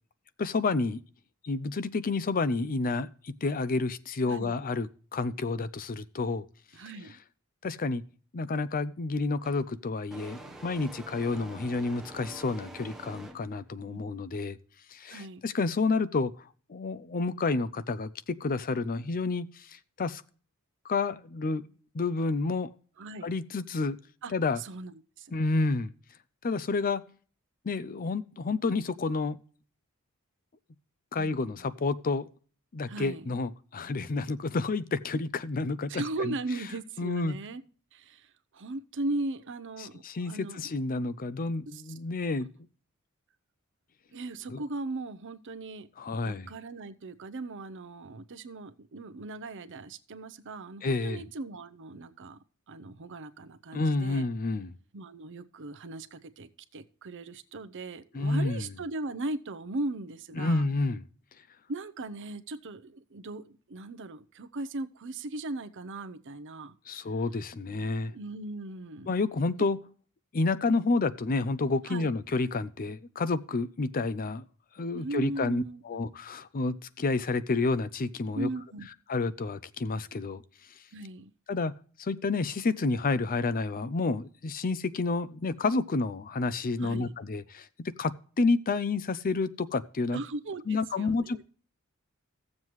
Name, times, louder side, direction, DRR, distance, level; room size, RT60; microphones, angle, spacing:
voice 1, 0.4-1.0 1.4-6.4 7.6-8.0 8.3-14.6 14.9-20.2 20.8-21.6 21.9-22.7 23.2-24.0 24.3-24.6 25.3-25.9 26.4-27.0 27.6-29.4 31.1-32.3 32.7-36.3 37.0-37.4 39.8-42.5 44.5-44.6 46.0-46.5 50.8-51.2 53.7-54.8 58.1-58.7 60.4-61.0 66.9-68.1 69.1-69.8 70.3-74.4 74.7-78.5 79.1-80.4 81.5-81.7 82.0-87.7 88.0-90.2 90.7-91.4, left 3 dB, 40° left, 0.5 m, -30 dB
voice 2, 4.2-4.6 6.7-7.2 13.9-14.0 15.1-15.4 23.0-23.3 24.2-25.8 31.2-31.4 32.9-33.3 35.9-37.6 37.9-40.6 41.7-41.8 44.1-45.9 46.2-52.4 52.7-54.3 54.9-60.6 61.7-67.0 68.1-69.2 71.9-72.1 74.9-76.1 78.3-78.9 80.9-81.3 86.8-87.1 90.1-91.4, right 2 dB, 55° right, 0.7 m, -38 dB
sound 1, 9.4-9.6 10.1-13.7, right 2 dB, ahead, 1.1 m, -46 dB
15.0 x 7.4 x 3.0 m
head